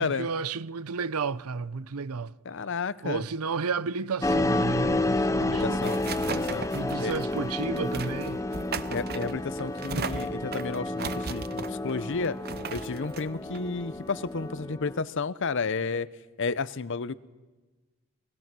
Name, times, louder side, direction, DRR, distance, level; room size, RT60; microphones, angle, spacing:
voice 1, 0.0-2.3 3.0-6.0 6.7-8.4, right 4 dB, 80° right, 0.7 m, -32 dB
voice 2, 2.4-3.2 5.4-6.6 7.0-7.1 8.9-12.4 12.7-16.1 16.4-17.1, left 4 dB, 55° left, 0.7 m, -32 dB
sound 1, 4.2-15.0, left 2 dB, 15° left, 0.7 m, -30 dB
sound 2, 5.2-14.5, right 5 dB, 45° right, 0.8 m, -38 dB
29.5 x 20.0 x 6.1 m
head